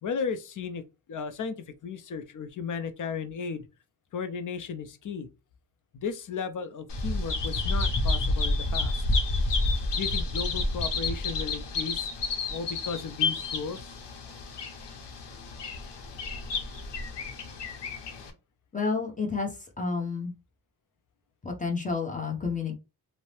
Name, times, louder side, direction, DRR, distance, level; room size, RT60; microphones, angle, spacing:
voice 1, 0.0-3.7 4.1-5.3 5.9-9.0 9.9-12.1 12.5-13.9, left 5 dB, 50° left, 0.5 m, -35 dB
Bird vocalization bird call bird song, 6.9-18.3, left 3 dB, 80° left, 0.8 m, -30 dB
voice 2, 18.7-19.5 19.8-20.3 21.4-22.7, left 4 dB, 20° left, 0.8 m, -30 dB
2.7 x 2.0 x 3.1 m
wide cardioid pair, 105°, 41 cm